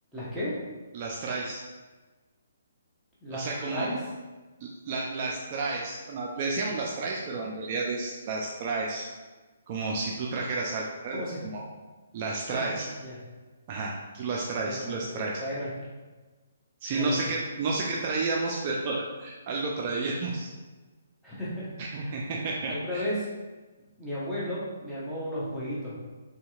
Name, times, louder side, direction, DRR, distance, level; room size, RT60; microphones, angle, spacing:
voice 1, 0.1-0.6 3.2-4.0 11.1-11.4 12.5-13.2 14.6-15.9 16.9-17.2 21.2-23.3 24.0-26.0, equal, ahead, -11 dB, 0.9 m, -35 dB
voice 2, 0.9-1.6 3.3-3.9 4.6-9.1 9.7-11.6 12.1-12.9 13.7-15.4 16.8-20.5 21.8-23.0, right 3 dB, 40° right, -2 dB, 0.3 m, -31 dB
2.8 x 2.7 x 2.3 m, 1.3 s
figure-of-eight pair, 140°, 0 cm